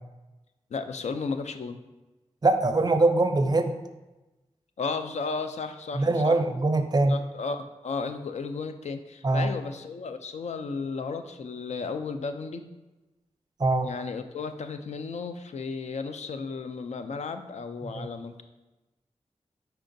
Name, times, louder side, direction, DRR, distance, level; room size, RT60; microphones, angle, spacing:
voice 1, 0.7-1.8 4.8-6.4 7.1-12.7 13.8-18.4, left 4 dB, 70° left, 8 dB, 0.4 m, -34 dB
voice 2, 2.4-3.7 5.9-7.2 9.2-9.5 13.6-13.9 17.9-18.1, right 2 dB, 35° right, 8 dB, 0.4 m, -22 dB
4.7 x 4.4 x 2.6 m, 1.1 s
cardioid pair, 50°, 12 cm